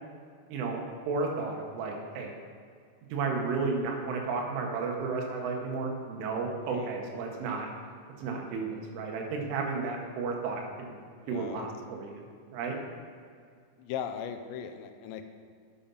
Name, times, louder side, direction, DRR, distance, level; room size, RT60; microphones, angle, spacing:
voice 1, 0.5-2.3 3.1-7.7 8.2-11.0 11.3-12.2 12.5-12.8, right 4 dB, 85° right, 1 dB, 3.8 m, -33 dB
voice 2, 6.6-7.0 11.2-11.7 13.8-15.3, left 8 dB, 80° left, 7 dB, 2.6 m, -38 dB
10.0 x 6.9 x 5.5 m, 2.2 s
omnidirectional pair, 5.4 m